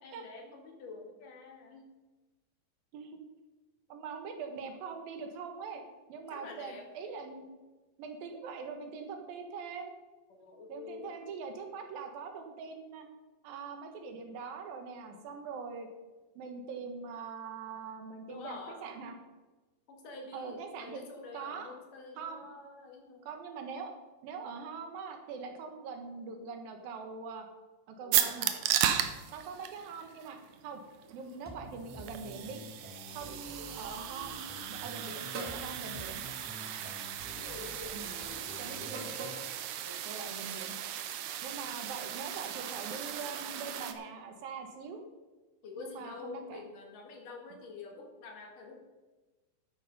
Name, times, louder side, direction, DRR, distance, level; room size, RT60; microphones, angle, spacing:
voice 1, 0.0-1.9 6.3-6.9 10.3-11.1 15.1-15.3 18.3-18.8 19.9-23.3 28.0-28.6 33.2-33.4 36.5-36.8 37.3-39.0 39.8-40.0 45.6-48.8, left 4 dB, 70° left, 3 dB, 3.5 m, -48 dB
voice 2, 3.9-5.8 6.1-7.5 8.0-9.9 10.7-13.1 13.4-15.9 16.4-19.2 20.3-21.0 21.3-21.7 22.2-22.5 23.3-23.9 24.2-27.5 27.9-28.5 29.3-30.4 30.6-30.8 31.1-32.6 33.1-36.2 37.9-38.1 38.6-39.0 40.0-40.7 41.4-45.0 45.8-46.6, right 5 dB, 85° right, 5 dB, 3.2 m, -42 dB
sound 1, 28.1-43.9, right 11 dB, 70° right, 2.1 m, -36 dB
sound 2, 31.5-39.6, equal, 10° right, 0.6 m, -49 dB
sound 3, 35.3-35.7 36.9-37.2 38.8-39.5, right 3 dB, 45° right, 2.6 m, -41 dB
11.5 x 9.4 x 5.5 m, 1.2 s
omnidirectional pair, 4.0 m